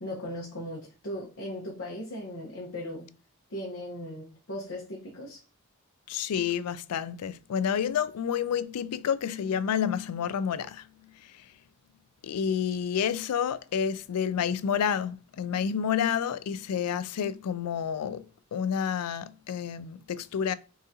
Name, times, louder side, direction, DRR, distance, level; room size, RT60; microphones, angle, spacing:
voice 1, 0.0-3.1 3.5-5.4, left 1 dB, 60° left, 1.0 m, -38 dB
voice 2, 6.1-10.9 12.2-18.2 18.5-20.5, left 8 dB, 90° left, 0.4 m, -29 dB
3.9 x 3.7 x 2.7 m
head